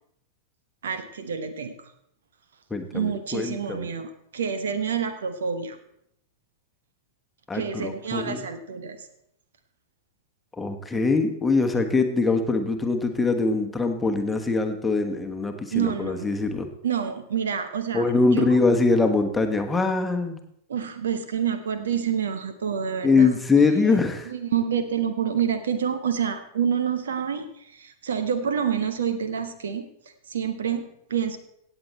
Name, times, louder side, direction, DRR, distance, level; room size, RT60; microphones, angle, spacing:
voice 1, 0.8-1.9 2.9-5.8 7.5-9.1 15.7-16.3 16.8-18.1 18.3-18.6 20.7-23.3 23.6-24.0 24.2-29.9 30.3-31.4, right 7 dB, 65° right, 9 dB, 1.2 m, -28 dB
voice 2, 2.7-3.9 7.5-8.4 10.6-16.7 17.9-20.4 23.0-24.3, left 3 dB, 10° left, 5 dB, 1.4 m, -23 dB
17.0 x 8.1 x 4.3 m, 0.75 s
figure-of-eight pair, 90°, 0 cm